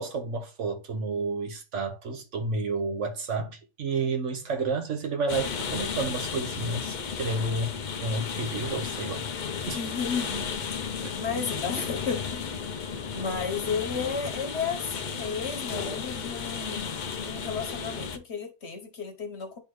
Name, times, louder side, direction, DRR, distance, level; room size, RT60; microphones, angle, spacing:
voice 1, 0.0-9.2 9.7-9.8 11.0-11.1, right 3 dB, 60° right, 1.1 m, -31 dB
sound 1, 5.3-18.2, left 6 dB, 70° left, 0.4 m, -34 dB
voice 2, 9.7-10.5 11.2-12.5 13.1-19.6, left 5 dB, 50° left, 1.2 m, -33 dB
10.5 x 3.5 x 3.1 m
omnidirectional pair, 1.5 m